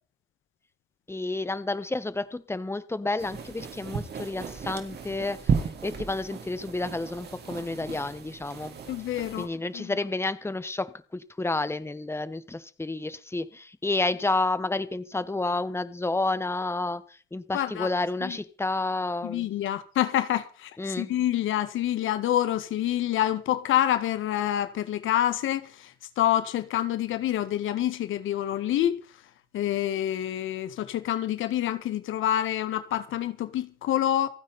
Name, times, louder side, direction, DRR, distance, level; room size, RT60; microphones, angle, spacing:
voice 1, 1.1-5.5 5.8-8.8 9.4-10.9 11.1-19.5 20.8-21.1, left 2 dB, 10° left, 1.3 m, -30 dB
sound 1, 3.2-9.5, right 6 dB, 55° right, 3.8 m, -34 dB
voice 2, 8.9-9.5 9.7-9.9 17.5-17.9 18.2-18.4 19.2-28.9 29.5-34.3, left 12 dB, 80° left, 1.7 m, -27 dB
28.0 x 9.5 x 4.2 m
cardioid pair, 90°, 20 cm